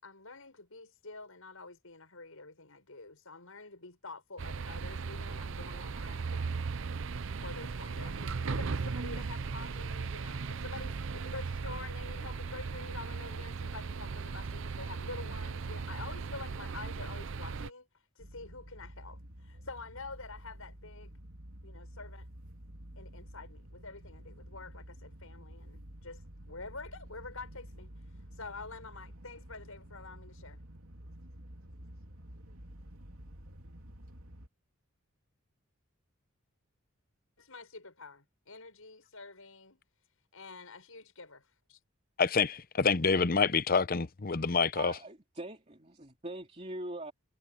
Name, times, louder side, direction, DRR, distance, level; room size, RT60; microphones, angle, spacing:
voice 1, 0.0-6.5 7.4-21.1 21.6-22.3 23.0-26.2 26.5-27.9 28.3-30.6 37.4-39.8 40.3-41.8, left 3 dB, 75° left, 6.5 m, -47 dB
sound 1, 4.4-17.7, right 4 dB, 60° right, 0.6 m, -37 dB
sound 2, 18.2-34.5, equal, 80° right, 2.9 m, -50 dB
voice 2, 42.2-44.9, left 5 dB, 40° left, 0.7 m, -27 dB
voice 3, 44.7-47.1, right 1 dB, 30° right, 3.0 m, -42 dB
head